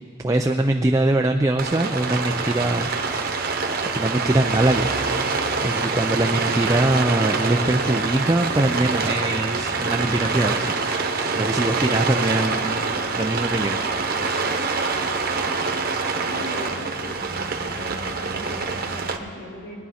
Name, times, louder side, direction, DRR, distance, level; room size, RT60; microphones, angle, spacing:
voice 1, 0.2-2.9 3.9-4.9 5.6-10.7 11.3-12.8 13.2-13.8, right 1 dB, 15° right, 4 dB, 0.4 m, -22 dB
Rain, 1.6-19.2, right 4 dB, 45° right, 1.1 m, -25 dB
voice 2, 16.3-17.3 17.6-19.7, equal, 70° left, -5 dB, 4.3 m, -39 dB
22.0 x 10.5 x 4.2 m, 2.5 s
head